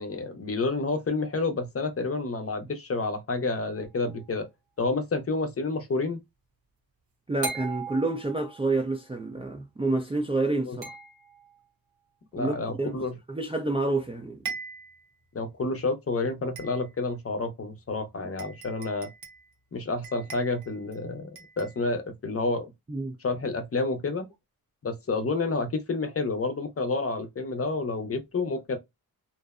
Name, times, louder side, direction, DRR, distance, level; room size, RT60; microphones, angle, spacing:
voice 1, 0.0-4.5 4.8-6.2 10.6-10.8 12.3-13.2 15.3-19.1 19.7-22.7 23.2-24.3 24.8-28.8, left 3 dB, 40° left, 0.6 m, -29 dB
sound 1, 3.8-4.3 7.4-8.7 10.8-11.6 13.7-13.8 14.1-14.2 14.5-15.1 15.6-15.7 16.6-17.1 17.9-18.0 18.4-19.5 20.0-21.0 21.4-21.8, right 4 dB, 70° right, 0.8 m, -40 dB
voice 2, 7.3-10.8 12.4-13.0 13.3-14.4 22.9-23.2, right 2 dB, 15° right, 0.3 m, -28 dB
2.6 x 2.0 x 2.3 m
cardioid pair, 70°, 38 cm